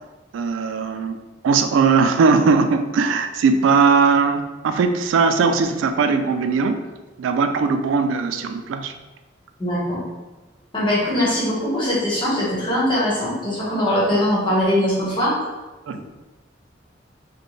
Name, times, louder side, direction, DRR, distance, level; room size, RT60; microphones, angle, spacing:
voice 1, 0.3-1.2 1.4-6.9 7.2-8.9 15.9-16.1, right 5 dB, 90° right, 7 dB, 0.3 m, -19 dB
voice 2, 9.6-10.0 10.7-15.3, left 1 dB, 25° left, -7 dB, 1.1 m, -21 dB
4.1 x 2.2 x 3.2 m, 1.2 s
head